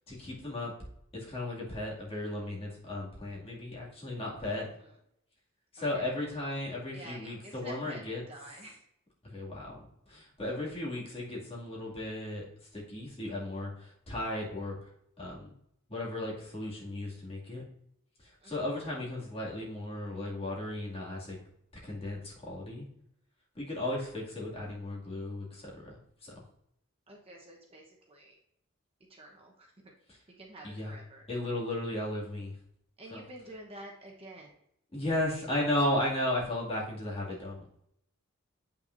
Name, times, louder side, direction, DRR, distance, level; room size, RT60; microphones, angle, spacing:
voice 1, 0.1-0.7 1.1-4.7 5.7-8.2 9.3-9.8 10.1-12.4 12.7-14.8 15.2-15.5 15.9-17.6 18.2-21.4 21.8-22.9 23.6-25.9 26.2-26.3 30.1-30.2 30.6-30.9 31.3-32.5 33.1-33.2 34.9-37.6, left 1 dB, 30° left, -4 dB, 2.3 m, -35 dB
voice 2, 4.6-4.9 5.8-6.2 6.9-8.0 8.3-8.8 18.4-18.7 23.8-24.1 27.1-28.4 29.1-29.9 30.4-31.2 33.0-34.5, right 1 dB, 30° right, 0 dB, 1.0 m, -49 dB
8.4 x 5.8 x 2.6 m, 0.73 s
head